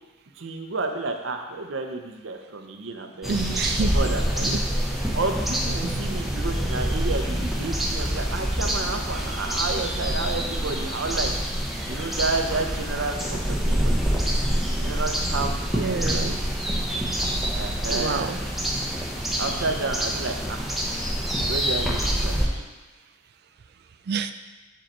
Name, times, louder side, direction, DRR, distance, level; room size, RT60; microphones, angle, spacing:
voice 1, 0.4-3.4 3.9-4.5 5.1-11.3 11.9-14.0 14.7-16.4 17.5-18.5 19.4-20.7 21.5-22.7, right 3 dB, 75° right, 4 dB, 0.8 m, -31 dB
sound 1, 3.2-22.5, equal, ahead, 0.9 m, -26 dB
voice 2, 3.3-4.0 4.4-4.6 15.7-16.4 17.9-18.4 24.1-24.3, right 5 dB, 55° right, 10 dB, 0.4 m, -27 dB
7.9 x 5.2 x 4.3 m, 1.2 s
head